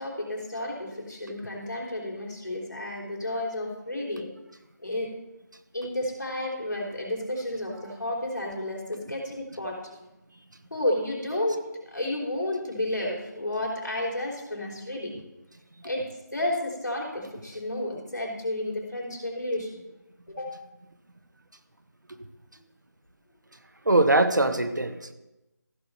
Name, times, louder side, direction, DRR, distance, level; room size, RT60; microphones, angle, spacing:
voice 1, 0.0-4.3 4.8-5.1 5.7-9.9 10.7-15.2 15.8-19.8 20.3-20.6, left 1 dB, 80° left, -2 dB, 3.6 m, -31 dB
voice 2, 23.9-25.1, right 2 dB, 80° right, 8 dB, 1.3 m, -22 dB
15.0 x 6.7 x 4.1 m, 0.98 s
figure-of-eight pair, 165°, 10 cm